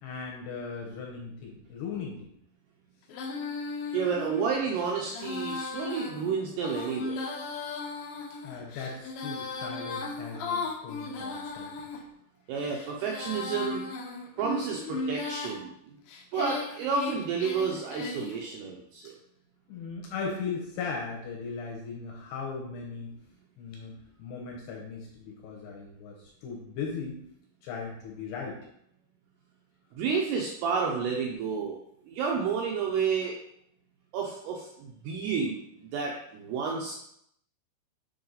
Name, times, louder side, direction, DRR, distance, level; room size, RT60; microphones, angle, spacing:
voice 1, 0.0-2.3 8.4-11.7 19.7-23.1 23.6-23.9 24.2-27.2 27.6-28.6, left 5 dB, 75° left, -1 dB, 2.7 m, -38 dB
Female singing, 3.1-12.0 12.6-15.6 16.1-18.4, left 3 dB, 90° left, 2.0 m, -36 dB
voice 2, 3.9-7.2 12.5-13.8 14.4-16.0 16.3-19.1 29.9-31.8 32.0-33.3 34.1-36.9, right 5 dB, 80° right, -1 dB, 2.4 m, -30 dB
7.2 x 4.7 x 3.9 m, 0.74 s
omnidirectional pair, 5.5 m